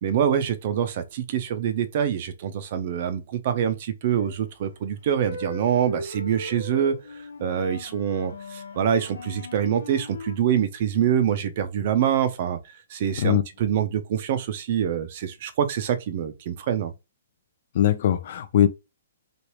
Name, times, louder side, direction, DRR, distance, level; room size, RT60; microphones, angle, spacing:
voice 1, 0.0-7.0 7.4-12.6 12.9-16.9, right 9 dB, 45° right, 0.5 m, -25 dB
sound 1, 4.2-4.6 5.1-10.4, left 1 dB, 85° left, 1.1 m, -38 dB
voice 2, 17.7-18.7, left 11 dB, 50° left, 0.4 m, -20 dB
3.2 x 2.4 x 3.0 m
hypercardioid pair, 150°, 0 cm